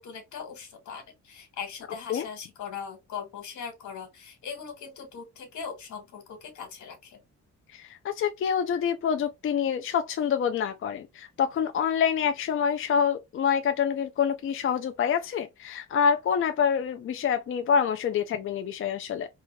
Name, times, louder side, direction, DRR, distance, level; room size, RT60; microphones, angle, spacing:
voice 1, 0.0-7.2, left 6 dB, 75° left, 1.5 m, -40 dB
voice 2, 7.7-19.3, left 7 dB, 45° left, 0.4 m, -26 dB
2.8 x 2.4 x 3.1 m
cardioid pair, 90°, 30 cm